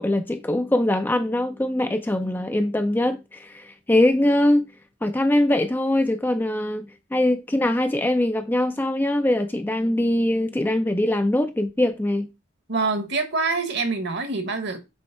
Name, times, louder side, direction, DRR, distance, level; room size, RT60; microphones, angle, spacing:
voice 1, 0.0-4.7 5.0-12.3, left 1 dB, 10° left, 0.4 m, -22 dB
voice 2, 12.7-14.8, right 3 dB, 55° right, 1.3 m, -25 dB
7.2 x 3.2 x 4.5 m
head